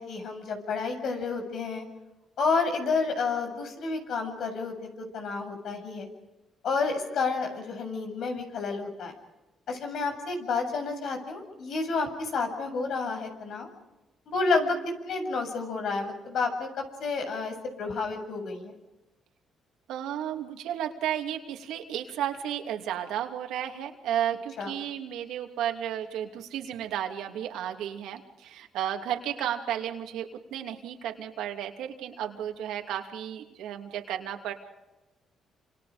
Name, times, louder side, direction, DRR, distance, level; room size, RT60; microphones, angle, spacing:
voice 1, 0.0-1.9 2.4-6.1 6.6-9.1 9.7-13.7 14.3-14.8 15.0-18.7 24.6-24.7, left 4 dB, 70° left, 5 dB, 7.5 m, -30 dB
voice 2, 19.9-34.5, right 10 dB, 90° right, 3 dB, 2.9 m, -33 dB
29.5 x 27.5 x 5.2 m, 1.0 s
cardioid pair, 90°, 0 cm